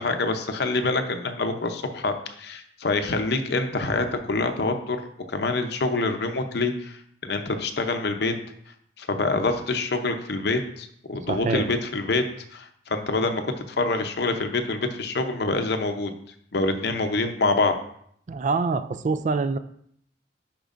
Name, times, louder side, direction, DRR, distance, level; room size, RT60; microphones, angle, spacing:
voice 1, 0.0-5.0 5.3-8.3 9.0-12.2 12.5-13.4 13.7-16.1 16.5-17.7, left 3 dB, 60° left, 7 dB, 0.7 m, -26 dB
voice 2, 11.3-11.7 18.3-19.6, right 4 dB, 40° right, 12 dB, 0.3 m, -25 dB
10.5 x 4.5 x 2.5 m, 0.67 s
head